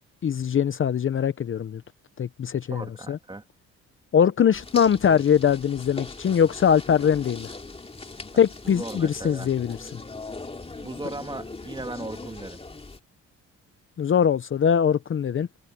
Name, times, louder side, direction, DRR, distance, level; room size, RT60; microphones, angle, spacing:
voice 1, 0.2-1.8 2.2-3.2 4.1-7.5 8.4-9.8 14.0-15.5, left 8 dB, 40° left, 0.8 m, -22 dB
voice 2, 2.7-3.4 8.7-9.5 10.8-12.6, right 2 dB, 15° right, 2.5 m, -37 dB
sound 1, 4.5-13.0, left 3 dB, 20° left, 2.7 m, -40 dB
cardioid pair, 90°, 30 cm